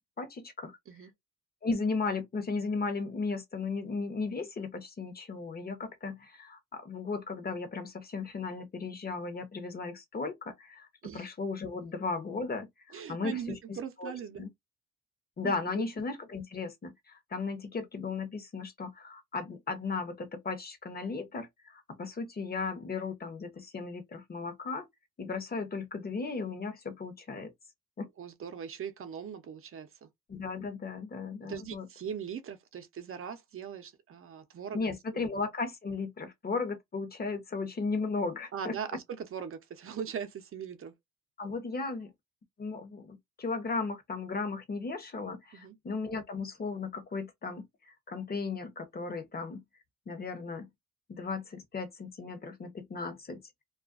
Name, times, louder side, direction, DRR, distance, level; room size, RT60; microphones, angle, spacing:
voice 1, 0.2-0.7 1.6-10.9 11.1-13.6 14.0-14.1 14.4-14.5 15.4-24.9 25.2-27.5 28.0-28.1 30.3-31.9 34.7-38.8 41.4-42.1 42.6-49.6 50.1-50.7 51.1-53.4, left 4 dB, 30° left, 0.8 m, -36 dB
voice 2, 12.9-14.5 15.4-15.9 28.2-30.1 31.4-35.3 38.5-40.9 45.5-45.8, right 7 dB, 45° right, 0.6 m, -40 dB
2.3 x 2.1 x 2.4 m
cardioid pair, 90°, 30 cm